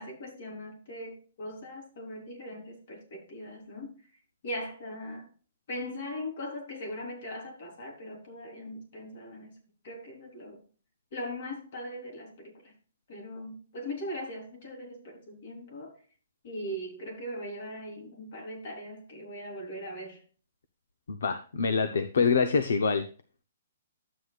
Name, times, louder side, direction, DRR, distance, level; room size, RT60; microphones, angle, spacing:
voice 1, 0.0-3.9 4.4-5.2 5.7-9.5 9.8-10.6 11.1-12.7 13.1-15.9 16.4-20.2, equal, 55° left, 3.8 m, -40 dB
voice 2, 21.1-23.0, left 5 dB, 75° left, 0.7 m, -25 dB
11.5 x 8.0 x 2.4 m
hypercardioid pair, 160°, 0 cm